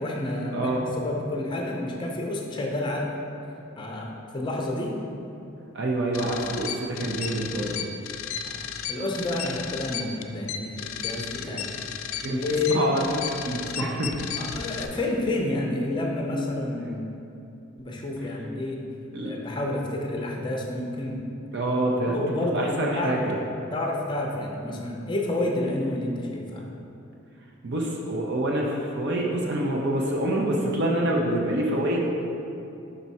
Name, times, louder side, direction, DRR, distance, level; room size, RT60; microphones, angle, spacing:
voice 1, 0.0-3.1 3.8-5.0 8.4-11.7 12.3-12.9 13.8-14.0 14.4-17.1 17.8-18.8 19.2-21.2 22.0-23.2 23.7-26.7, left 2 dB, 20° left, 0 dB, 0.6 m, -29 dB
voice 2, 0.5-0.8 5.7-7.8 11.4-11.7 12.2-12.4 12.7-13.2 13.4-14.1 19.1-19.3 21.5-23.4 27.6-32.0, right 1 dB, 55° right, -2 dB, 0.6 m, -26 dB
sound 1, 6.1-14.9, left 8 dB, 80° left, 0.4 m, -34 dB
5.3 x 4.5 x 4.1 m, 2.8 s
head